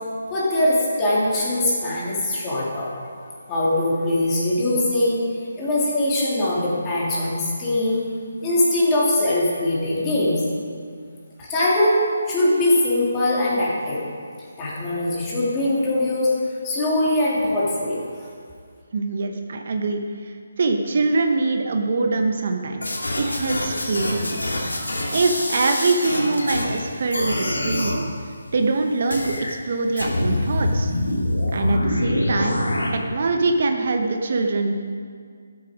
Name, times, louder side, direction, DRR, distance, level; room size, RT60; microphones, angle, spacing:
voice 1, 0.3-2.9 3.5-5.2 5.6-8.0 8.4-10.4 11.4-12.0 12.3-14.0 14.6-16.3 16.6-18.1, left 1 dB, 20° left, -7 dB, 3.1 m, -21 dB
voice 2, 18.9-22.9 23.2-24.3 25.1-28.0 28.5-30.9 31.5-32.6 32.9-34.8, right 3 dB, 55° right, 5 dB, 0.9 m, -23 dB
sound 1, 22.8-26.8 27.1-28.0 29.1-29.5 30.0-32.9, left 1 dB, 90° left, 2.4 m, -25 dB
13.0 x 8.1 x 5.2 m, 2.1 s
figure-of-eight pair, 155°, 0 cm